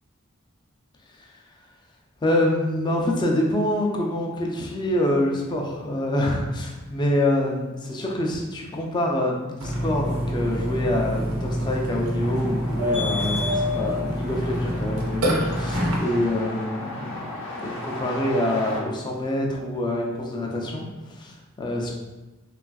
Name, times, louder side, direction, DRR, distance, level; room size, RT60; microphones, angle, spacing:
voice 1, 2.2-17.3 17.6-21.9, left 1 dB, 20° left, -1 dB, 0.3 m, -26 dB
Burping eructation, 9.6-16.0, equal, 90° right, 0.6 m, -26 dB
sound 1, 12.2-18.8, left 2 dB, 65° left, 0.6 m, -36 dB
3.2 x 2.3 x 2.2 m, 1.1 s
head